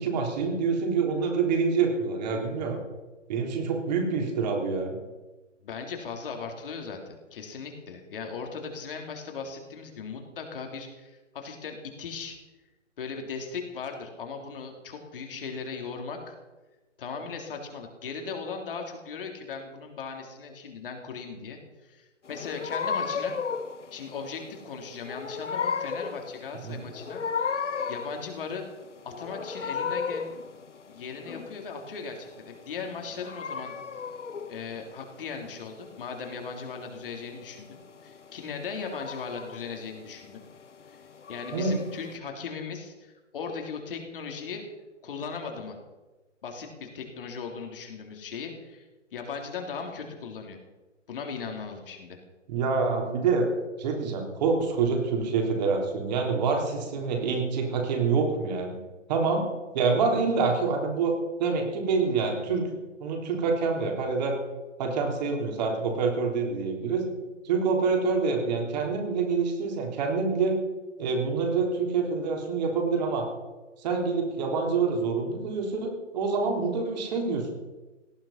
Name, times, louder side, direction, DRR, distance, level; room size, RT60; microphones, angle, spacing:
voice 1, 0.0-2.8 3.3-5.0 26.6-26.7 41.5-41.7 52.5-53.5 53.8-58.8 59.1-59.4 59.7-61.1 61.4-62.7 63.0-64.3 64.8-67.0 67.4-70.6 71.0-73.3 73.8-77.5, right 4 dB, 35° right, 1 dB, 3.7 m, -26 dB
voice 2, 5.6-12.4 13.0-16.4 17.0-23.3 23.9-27.2 27.9-28.7 29.0-30.3 30.9-33.7 34.5-40.4 40.9-41.0 41.3-44.6 45.0-45.8 46.4-50.6 51.1-52.2, left 5 dB, 45° left, 3 dB, 3.3 m, -38 dB
sound 1, 22.3-42.2, left 6 dB, 70° left, 1.2 m, -35 dB
18.0 x 12.5 x 5.8 m, 1.1 s
figure-of-eight pair, 135°, 37 cm